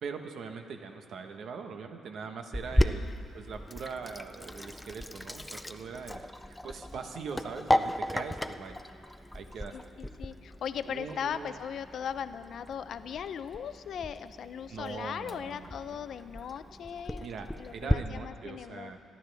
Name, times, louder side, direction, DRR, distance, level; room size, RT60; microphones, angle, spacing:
voice 1, 0.0-3.0 3.3-8.8 9.3-9.7 10.8-11.6 14.7-16.0 17.2-19.0, right 5 dB, 65° right, 6 dB, 1.1 m, -41 dB
Sink (filling or washing), 2.5-17.9, left 1 dB, 5° left, 0.4 m, -35 dB
voice 2, 2.8-3.2 9.7-17.3 17.6-18.9, left 8 dB, 65° left, 12 dB, 0.5 m, -38 dB
26.5 x 11.0 x 3.5 m, 2.5 s
cardioid pair, 120°, 0 cm